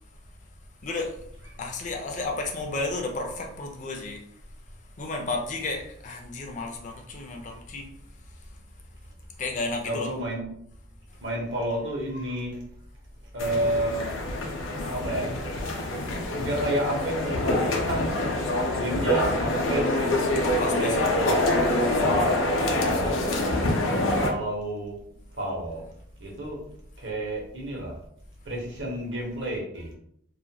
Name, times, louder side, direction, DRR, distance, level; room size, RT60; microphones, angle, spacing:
voice 1, 0.8-1.2 1.6-4.2 5.0-7.9 9.4-10.2 20.6-21.2, left 2 dB, 40° left, 0.4 m, -32 dB
voice 2, 9.8-10.5 11.2-12.6 13.3-15.3 16.1-18.4 18.7-20.2 20.8-22.2 22.6-23.3 24.2-25.0 25.3-25.8 26.2-26.6 27.0-27.9 28.4-29.9, right 1 dB, 70° right, 0.9 m, -31 dB
Crowd Talking Quietly Stadium, 13.4-24.3, left 1 dB, 90° left, 0.5 m, -25 dB
2.4 x 2.2 x 2.7 m
head